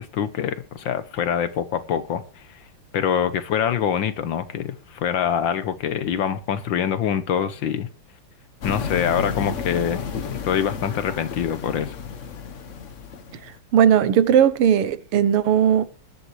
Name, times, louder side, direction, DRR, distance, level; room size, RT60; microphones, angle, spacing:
voice 1, 0.0-2.2 2.9-7.9 8.6-10.0 10.4-12.0, left 8 dB, 65° left, 1.5 m, -24 dB
sound 1, 8.6-13.6, left 6 dB, 45° left, 1.1 m, -32 dB
voice 2, 13.7-15.8, right 9 dB, 90° right, 1.9 m, -17 dB
21.0 x 11.0 x 3.2 m
omnidirectional pair, 2.4 m